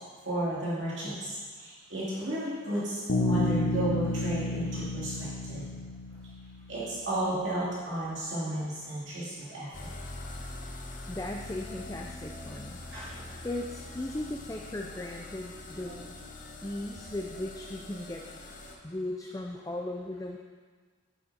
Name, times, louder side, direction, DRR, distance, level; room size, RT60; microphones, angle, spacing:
voice 1, 0.2-5.7 6.7-9.9 12.9-13.4 15.8-15.9, right 1 dB, 55° right, -8 dB, 2.8 m, -33 dB
Bass guitar, 3.1-6.8, left 2 dB, 70° left, 1.0 m, -31 dB
sound 1, 9.7-18.7, left 2 dB, 40° left, 1.1 m, -43 dB
voice 2, 11.1-12.8 13.4-16.1 16.6-18.2 18.8-20.4, left 1 dB, 15° left, 1 dB, 0.5 m, -37 dB
9.5 x 9.0 x 4.3 m, 1.5 s
head